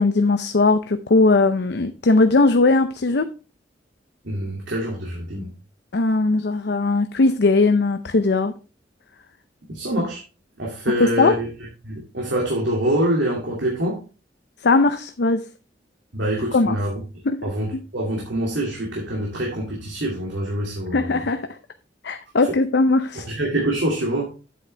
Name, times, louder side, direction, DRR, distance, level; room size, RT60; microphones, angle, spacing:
voice 1, 0.0-3.3 5.9-8.5 11.0-11.3 14.6-15.4 16.5-16.8 17.3-17.4 20.9-21.5 22.0-23.2, left 3 dB, 65° left, 9 dB, 0.6 m, -19 dB
voice 2, 4.2-5.5 9.7-10.2 10.6-11.5 11.8-14.0 16.1-17.0 17.4-21.2 23.3-24.3, right 1 dB, 80° right, -2 dB, 2.4 m, -25 dB
8.7 x 7.7 x 3.3 m, 0.33 s
head